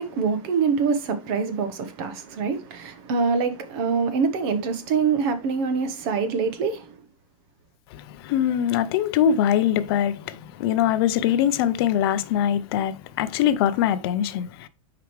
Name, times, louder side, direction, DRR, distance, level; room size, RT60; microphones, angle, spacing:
voice 1, 0.0-6.9, right 5 dB, 45° right, 1.1 m, -25 dB
voice 2, 7.9-14.7, left 10 dB, 45° left, 0.5 m, -23 dB
6.8 x 4.9 x 3.2 m
supercardioid pair, 155°, 18 cm